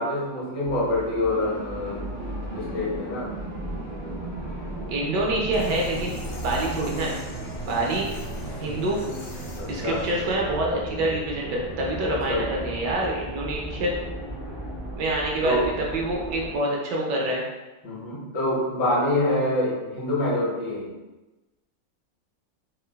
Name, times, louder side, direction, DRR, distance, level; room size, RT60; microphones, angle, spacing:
voice 1, 0.0-2.1 2.5-3.3 9.6-10.0 12.1-12.5 15.4-15.7 17.8-20.9, left 1 dB, 75° left, -6 dB, 1.5 m, -26 dB
sound 1, 0.6-16.6, right 1 dB, 35° right, 0.4 m, -35 dB
voice 2, 4.9-7.2 7.4-8.1 8.6-9.0 9.7-13.9 15.0-17.4, right 2 dB, 75° right, -2 dB, 1.2 m, -26 dB
sound 2, 5.5-10.3, left 1 dB, 90° left, 1.4 m, -40 dB
3.7 x 2.3 x 2.2 m, 1.1 s
omnidirectional pair, 2.0 m